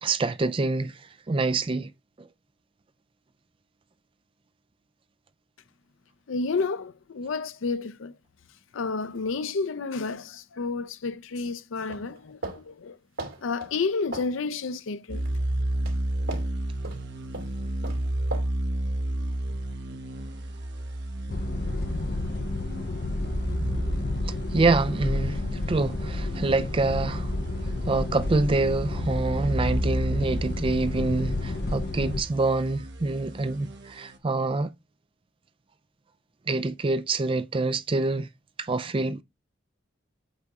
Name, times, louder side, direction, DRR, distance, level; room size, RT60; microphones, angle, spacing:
voice 1, 0.0-1.0 1.3-1.9 2.2-2.3 24.3-27.3 27.8-34.7 36.5-38.3 38.6-39.2, right 3 dB, 25° right, 0.4 m, -26 dB
voice 2, 6.3-8.1 8.7-13.0 13.4-15.2, left 4 dB, 75° left, 0.5 m, -30 dB
sound 1, 11.9-12.6 13.2-13.7 14.1-14.3 15.1-15.3 15.9-16.0 16.3-16.5 16.8-17.0 17.3-17.5 17.8-18.0 18.3-18.5, right 2 dB, 85° right, 2.8 m, -36 dB
sound 2, 15.1-34.2, right 1 dB, 60° right, 1.3 m, -33 dB
sound 3, 21.3-32.2, left 2 dB, 50° left, 0.8 m, -31 dB
8.2 x 3.6 x 4.1 m
head